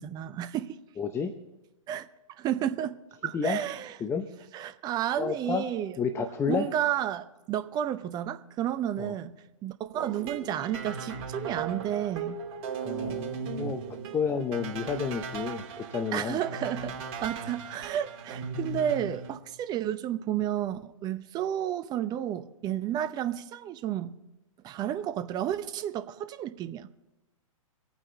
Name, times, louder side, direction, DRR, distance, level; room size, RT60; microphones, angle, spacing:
voice 1, 0.0-0.8 1.9-2.1 2.4-3.0 3.2-4.0 4.5-6.0 6.5-9.3 9.6-12.4 16.1-17.0 17.2-24.1 24.6-26.9, right 11 dB, 20° right, 0.7 m, -31 dB
voice 2, 1.0-1.3 3.3-3.6 4.0-4.3 5.2-5.6 6.0-6.7 9.0-9.1 12.8-13.8 14.1-16.4, left 6 dB, 15° left, 0.8 m, -30 dB
sound 1, 9.9-19.3, right 5 dB, 45° right, 2.7 m, -37 dB
24.0 x 9.1 x 4.0 m
hypercardioid pair, 125°, 18 cm